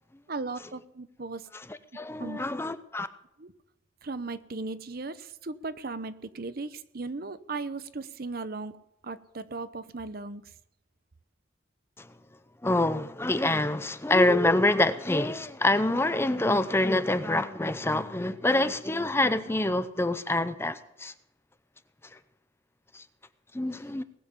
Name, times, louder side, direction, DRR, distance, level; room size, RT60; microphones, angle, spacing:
voice 1, 0.3-1.5 2.2-2.4 3.4-3.5 4.0-8.8 9.0-10.4, right 3 dB, 50° right, 0.8 m, -37 dB
voice 2, 1.5-3.1 12.0-12.1 12.6-21.1 22.9-23.0 23.5-24.0, left 2 dB, 15° left, 0.6 m, -26 dB
19.5 x 7.8 x 6.9 m
head